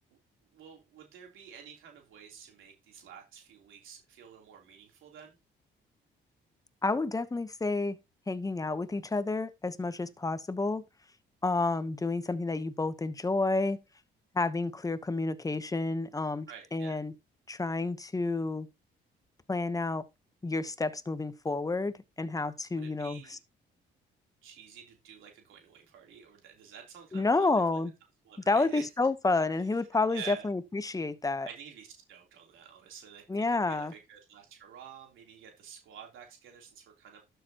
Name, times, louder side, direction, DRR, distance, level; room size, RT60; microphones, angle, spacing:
voice 1, 0.5-5.4 16.5-17.0 22.7-23.4 24.4-27.8 28.3-28.8 30.1-30.5 31.4-37.2, right 8 dB, 80° right, 3.6 m, -49 dB
voice 2, 6.8-8.0 8.3-10.8 11.4-13.8 14.3-17.1 17.5-18.7 19.5-20.0 20.4-23.4 27.1-27.9 28.5-31.5 33.3-33.9, left 3 dB, 15° left, 1.0 m, -30 dB
12.0 x 6.8 x 3.0 m
cardioid pair, 90°, 20 cm